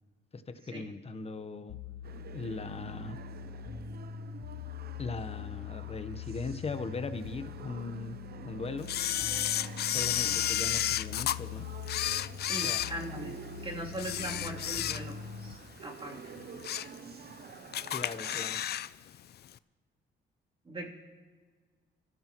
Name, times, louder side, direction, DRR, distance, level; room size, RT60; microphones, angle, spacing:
voice 1, 0.3-1.8 2.3-3.2 5.0-8.2 8.4-8.9 9.9-11.7 12.6-12.8 17.9-18.6, left 3 dB, 30° left, 10 dB, 1.0 m, -39 dB
sound 1, 1.7-15.5, left 8 dB, 85° left, 0.8 m, -43 dB
sound 2, 2.0-18.5, right 7 dB, 50° right, 0.7 m, -49 dB
Camera, 8.9-11.4 11.8-13.5 13.9-15.3 15.7-15.8 16.4-17.0 17.3-17.4 17.7-18.9 19.1-19.2, left 11 dB, 55° left, 0.4 m, -32 dB
voice 2, 12.4-13.3 13.6-16.2 20.6-20.9, right 1 dB, 25° right, -2 dB, 3.1 m, -40 dB
24.5 x 14.5 x 3.0 m, 1.5 s
cardioid pair, 90°, 20 cm